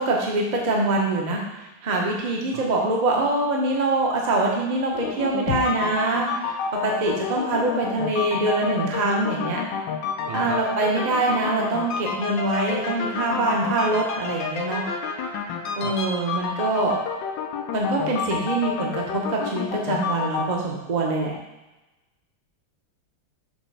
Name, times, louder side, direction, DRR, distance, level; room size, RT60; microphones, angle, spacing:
voice 1, 0.0-1.4 1.8-6.3 6.8-9.6 10.3-14.8 15.8-17.0 17.7-21.3, right 2 dB, 35° right, -2 dB, 0.7 m, -24 dB
voice 2, 2.5-3.0 10.2-10.6 15.8-15.9, right 7 dB, 85° right, 2 dB, 1.8 m, -37 dB
sound 1, 4.9-20.5, left 5 dB, 70° left, 1.3 m, -30 dB
6.9 x 3.1 x 5.6 m, 1.0 s
omnidirectional pair, 2.3 m